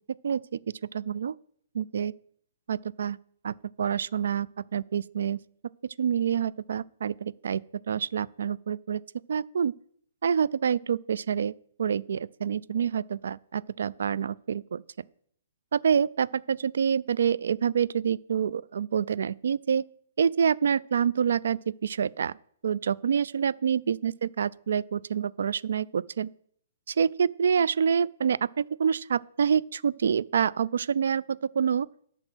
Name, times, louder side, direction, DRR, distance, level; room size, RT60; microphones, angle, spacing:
voice 1, 0.2-0.6 0.9-1.3 1.7-2.1 2.7-3.2 3.4-5.4 6.0-7.6 7.9-9.0 9.3-9.7 10.2-14.8 15.7-19.8 20.2-22.3 22.6-26.3 26.9-31.9, right 7 dB, 75° right, 0.3 m, -27 dB
8.9 x 5.8 x 6.1 m
hypercardioid pair, 155°, 0 cm